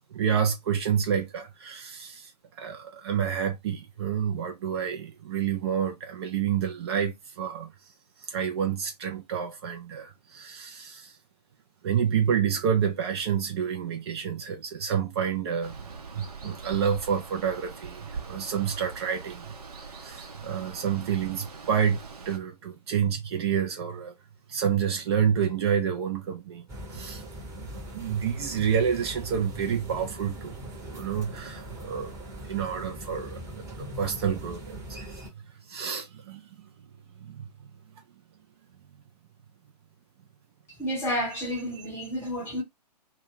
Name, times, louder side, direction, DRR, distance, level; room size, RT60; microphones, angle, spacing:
voice 1, 0.1-7.7 8.2-11.2 11.8-15.8 16.1-19.5 19.9-24.1 24.5-27.2 27.9-32.2 32.4-33.4 33.8-35.2 35.7-36.7 37.2-37.5, right 8 dB, 40° right, 0.6 m, -29 dB
Water, 15.6-22.4, right 5 dB, 60° right, 0.9 m, -42 dB
sound 1, 26.7-35.3, right 1 dB, 15° right, 1.1 m, -41 dB
voice 2, 40.8-42.6, equal, 10° left, 1.2 m, -30 dB
2.3 x 2.2 x 3.7 m
figure-of-eight pair, 120°, 21 cm